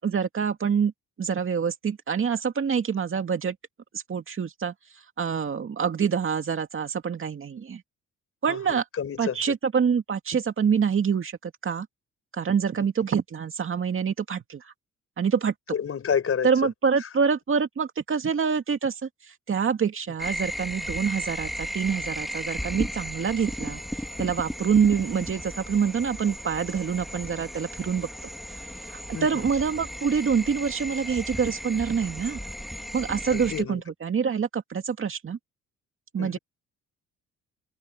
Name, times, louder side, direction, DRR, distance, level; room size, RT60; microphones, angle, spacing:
voice 1, 0.0-0.9 1.2-3.6 3.9-4.7 5.2-7.8 8.4-8.8 9.2-11.9 12.3-14.7 15.2-15.5 16.4-23.8 24.2-28.1 28.9-32.4 32.9-35.4 36.1-36.4, right 6 dB, 45° right, 2.3 m, -26 dB
voice 2, 8.5-9.4 12.8-12.9 15.7-16.5 29.1-29.5 33.3-33.8 36.2-36.4, left 7 dB, 50° left, 6.3 m, -29 dB
sound 1, 20.2-33.6, equal, ahead, 2.8 m, -35 dB
open air
cardioid pair, 90°, 30 cm